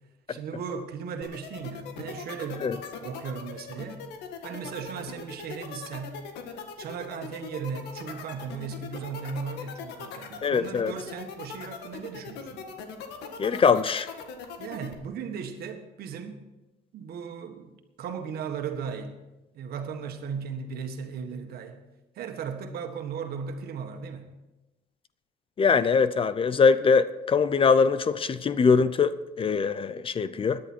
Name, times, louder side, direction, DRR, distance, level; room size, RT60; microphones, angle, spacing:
voice 1, 0.3-2.7 3.0-4.0 4.4-6.2 6.8-12.6 14.6-16.4 16.9-17.7 18.0-19.3 19.5-21.8 22.2-24.3, right 6 dB, 65° right, 6 dB, 1.7 m, -36 dB
sound 1, 1.2-14.9, left 6 dB, 80° left, 1.7 m, -40 dB
voice 2, 10.4-10.9 13.4-14.1 25.6-30.6, left 5 dB, 30° left, 15 dB, 0.6 m, -22 dB
17.5 x 10.5 x 4.5 m, 1.0 s
cardioid pair, 110°, 17 cm